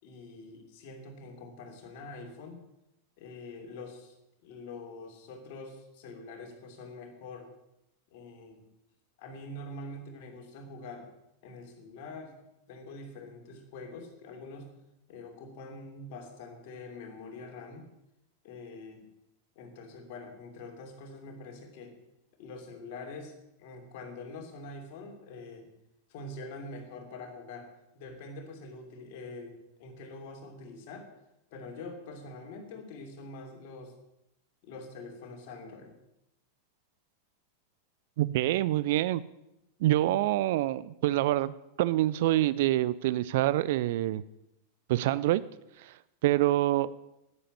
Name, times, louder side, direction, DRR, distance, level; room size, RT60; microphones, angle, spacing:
voice 1, 0.0-2.6 3.2-4.1 4.4-7.5 8.1-8.6 9.2-11.1 11.4-12.4 12.7-14.7 15.1-17.9 18.4-19.0 19.5-21.9 22.4-23.3 23.6-25.7 26.1-27.7 27.9-31.1 31.5-33.9 34.6-35.9, left 2 dB, 50° left, 4 dB, 2.8 m, -45 dB
voice 2, 38.2-39.2 39.8-44.2 44.9-45.4 45.8-45.9 46.2-46.9, right 15 dB, 50° right, 18 dB, 0.4 m, -26 dB
10.0 x 9.8 x 8.6 m, 0.87 s
figure-of-eight pair, 90°, 0 cm